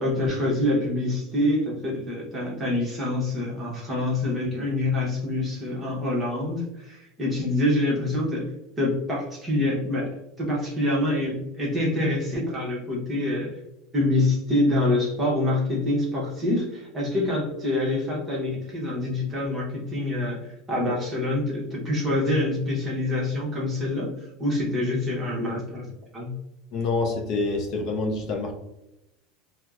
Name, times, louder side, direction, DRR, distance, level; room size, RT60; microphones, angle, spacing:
voice 1, 0.0-8.5 8.8-10.1 10.4-13.5 13.9-24.1 24.4-25.9 26.1-26.3, left 1 dB, 15° right, -4 dB, 0.8 m, -26 dB
voice 2, 26.7-28.5, left 3 dB, 35° left, 2 dB, 0.4 m, -26 dB
4.2 x 2.0 x 2.3 m, 0.88 s
supercardioid pair, 170°, 0 cm